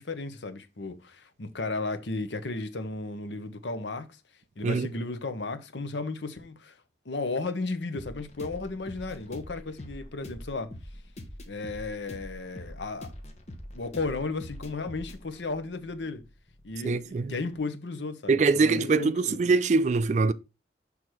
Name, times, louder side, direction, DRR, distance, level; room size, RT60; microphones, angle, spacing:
voice 1, 0.0-4.1 4.6-6.7 7.0-10.7 11.5-13.1 13.7-16.2 16.6-19.4, left 3 dB, 80° left, 0.8 m, -34 dB
sound 1, 7.9-17.6, left 1 dB, 35° left, 1.0 m, -44 dB
voice 2, 16.8-17.4 18.3-20.3, right 4 dB, 40° right, 0.3 m, -23 dB
6.2 x 3.5 x 4.6 m
head